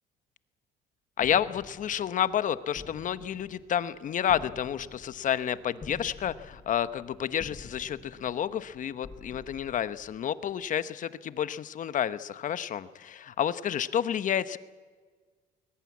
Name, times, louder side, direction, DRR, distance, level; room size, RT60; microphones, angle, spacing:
voice 1, 1.2-14.6, left 9 dB, 50° left, 13 dB, 1.0 m, -30 dB
sound 1, 1.2-10.7, left 4 dB, 30° left, 7.1 m, -50 dB
21.0 x 20.0 x 8.6 m, 1.5 s
cardioid pair, 110°, 17 cm